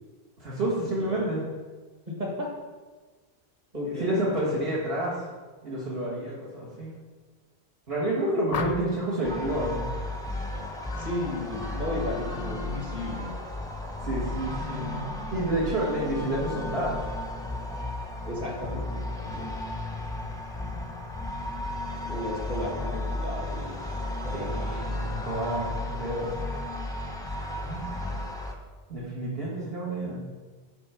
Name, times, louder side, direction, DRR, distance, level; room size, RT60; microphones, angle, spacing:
voice 1, 0.4-1.4 3.8-5.3 5.6-6.9 7.9-9.9 14.0-15.0 15.3-17.0 24.3-26.3 27.6-27.9 28.9-30.2, right 1 dB, 70° right, -7 dB, 1.9 m, -29 dB
voice 2, 1.0-1.3 2.2-2.5 3.7-4.2 11.0-13.4 18.2-19.5 22.1-24.7, left 1 dB, 40° right, -2 dB, 2.0 m, -34 dB
sound 1, 8.5-9.1 10.9-11.1 11.5-11.9, left 7 dB, 55° left, 0.4 m, -34 dB
sound 2, 9.2-28.5, left 1 dB, 5° left, 0.5 m, -34 dB
8.9 x 3.6 x 5.6 m, 1.3 s
omnidirectional pair, 1.1 m